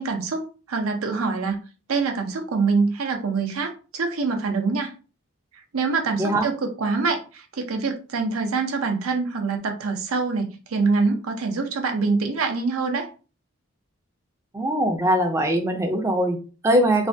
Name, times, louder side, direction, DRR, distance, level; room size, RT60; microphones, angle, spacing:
voice 1, 0.0-1.6 1.9-4.9 5.7-13.1, right 4 dB, 80° right, 4 dB, 0.6 m, -25 dB
voice 2, 6.2-6.5 14.5-17.1, right 1 dB, 15° right, 4 dB, 0.4 m, -22 dB
3.2 x 2.2 x 2.6 m, 0.34 s
head